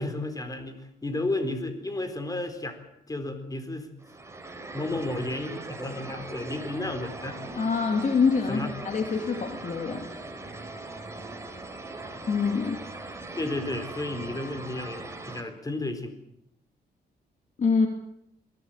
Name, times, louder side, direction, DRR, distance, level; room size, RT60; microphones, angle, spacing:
voice 1, 0.0-2.8 3.1-3.9 4.7-7.4 8.5-8.7 13.4-16.1, left 2 dB, 20° left, 7 dB, 4.3 m, -32 dB
sound 1, 4.0-15.4, right 2 dB, 15° right, 4.1 m, -40 dB
voice 2, 7.6-10.1 12.3-12.8 17.6-17.9, left 5 dB, 45° left, 4 dB, 2.6 m, -25 dB
22.5 x 17.5 x 9.0 m, 0.79 s
cardioid pair, 110°, 18 cm